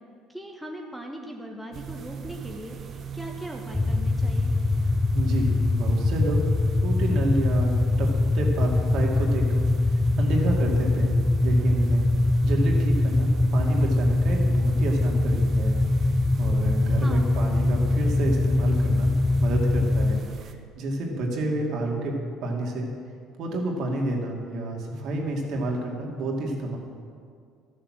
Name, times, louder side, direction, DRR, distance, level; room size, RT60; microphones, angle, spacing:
voice 1, 0.3-4.5 17.0-17.4, equal, 5° right, 0 dB, 1.3 m, -39 dB
sound 1, 1.7-20.5, right 6 dB, 45° right, 0.9 m, -39 dB
sound 2, 3.7-20.2, left 2 dB, 15° left, 0.4 m, -23 dB
voice 2, 5.1-6.4 6.8-8.1 8.3-9.7 10.2-12.1 12.4-15.8 16.4-19.1 19.4-20.5 20.8-22.1 22.4-22.9 23.4-26.8, right 1 dB, 60° right, 0 dB, 2.4 m, -29 dB
12.5 x 7.0 x 7.4 m, 2.2 s
supercardioid pair, 100°, 0 cm